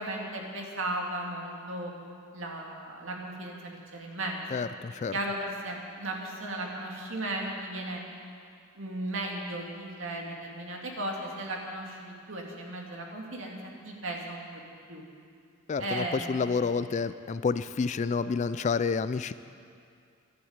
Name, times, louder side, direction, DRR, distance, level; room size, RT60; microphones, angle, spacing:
voice 1, 0.0-1.9 2.3-4.6 5.1-8.0 8.8-13.5 13.8-15.0 15.8-16.5, right 1 dB, 65° right, 0 dB, 2.2 m, -36 dB
voice 2, 4.5-5.1 15.7-19.3, left 5 dB, 35° left, 14 dB, 0.3 m, -29 dB
11.5 x 11.0 x 8.1 m, 2.3 s
head